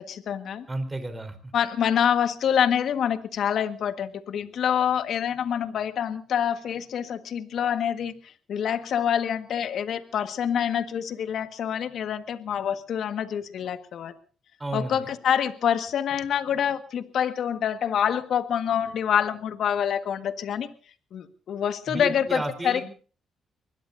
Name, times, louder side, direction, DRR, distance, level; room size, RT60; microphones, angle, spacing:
voice 1, 0.0-0.6 1.5-14.1 14.7-20.7 21.1-22.8, left 8 dB, 65° left, 11 dB, 1.5 m, -26 dB
voice 2, 0.7-1.5 14.6-15.1 21.9-22.8, right 2 dB, 15° right, 9 dB, 4.1 m, -32 dB
23.5 x 20.5 x 2.6 m, 0.38 s
cardioid pair, 90°, 0 cm